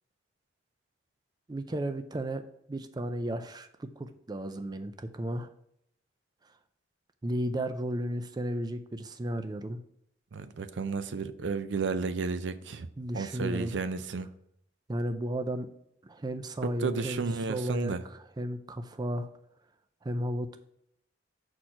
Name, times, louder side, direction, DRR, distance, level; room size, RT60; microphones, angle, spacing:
voice 1, 1.5-2.4 2.7-5.5 7.2-9.8 13.0-13.8 14.9-15.7 16.0-19.3 20.0-20.6, right 1 dB, 20° right, 9 dB, 0.4 m, -34 dB
voice 2, 10.3-12.9 13.1-14.3 16.8-18.0, right 4 dB, 75° right, 12 dB, 0.5 m, -32 dB
6.2 x 4.4 x 5.6 m, 0.72 s
head